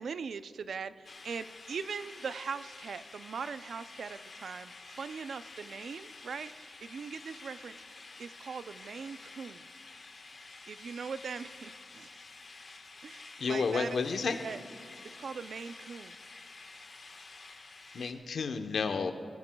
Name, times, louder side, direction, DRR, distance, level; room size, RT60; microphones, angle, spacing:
voice 1, 0.0-7.8 8.2-9.7 10.4-12.1 13.0-14.0 14.4-14.6 15.2-16.2, right 6 dB, 80° right, 13 dB, 0.4 m, -41 dB
sound 1, 1.0-18.1, left 3 dB, 50° left, 1.3 m, -50 dB
voice 2, 13.4-14.4 17.9-19.1, left 5 dB, 80° left, 7 dB, 0.9 m, -31 dB
20.5 x 16.0 x 2.3 m, 2.4 s
wide cardioid pair, 135°, 0 cm